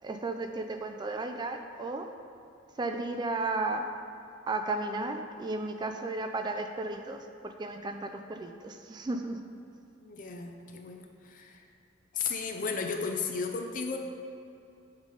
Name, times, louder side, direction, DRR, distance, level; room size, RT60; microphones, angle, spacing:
voice 1, 0.0-2.1 2.8-3.9 4.5-9.4, right 2 dB, 25° right, 5 dB, 0.3 m, -34 dB
voice 2, 10.0-11.7 12.1-14.0, left 5 dB, 45° left, 4 dB, 0.6 m, -34 dB
7.3 x 3.8 x 4.9 m, 2.6 s
head